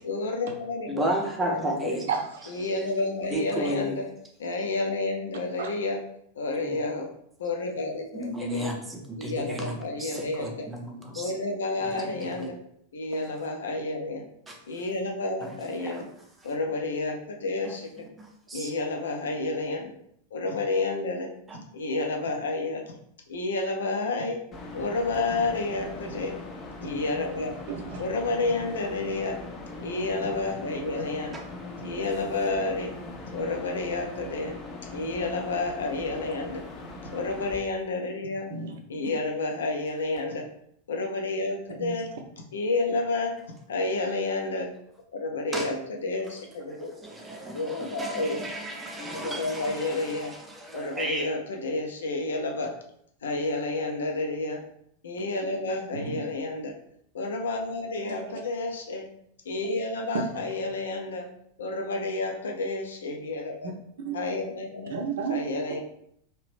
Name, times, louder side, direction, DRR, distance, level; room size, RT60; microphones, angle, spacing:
voice 1, 0.0-1.1 1.4-2.0 2.5-4.1 4.4-6.0 6.4-7.1 7.4-8.7 9.2-10.7 11.1-12.6 12.9-14.2 14.7-16.0 16.4-18.1 18.5-19.9 20.3-21.3 21.7-22.8 23.3-24.4 24.7-26.4 26.8-27.6 28.0-29.4 29.8-31.4 31.8-32.9 33.3-34.5 34.9-36.6 37.1-38.5 38.9-40.5 40.9-42.1 42.5-43.3 43.7-44.7 45.1-46.9 47.5-48.4 49.0-50.3 50.7-52.7 53.2-54.6 55.0-56.7 57.1-59.1 59.4-61.3 61.6-63.7 64.1-64.9 65.3-65.8, left 2 dB, 65° left, 3 dB, 0.6 m, -30 dB
voice 2, 0.9-2.1 2.6-2.7 3.3-3.9 6.6-6.8 8.1-11.3 11.8-12.3 14.5-14.6 15.4-16.0 17.6-17.7 18.2-18.7 21.5-21.6 31.3-31.5 45.5-45.7 46.3-46.4 46.7-51.3, right 1 dB, 15° right, 1 dB, 0.7 m, -33 dB
voice 3, 2.1-2.6 5.6-5.7 27.7-28.0 38.5-38.8 41.8-42.0 55.9-56.3 58.1-58.4 64.0-64.2 64.9-65.4, right 6 dB, 55° right, 3 dB, 0.5 m, -32 dB
sound 1, 24.5-37.6, left 2 dB, 30° left, 0.7 m, -41 dB
3.0 x 2.8 x 3.1 m, 0.70 s
figure-of-eight pair, 90°, 0 cm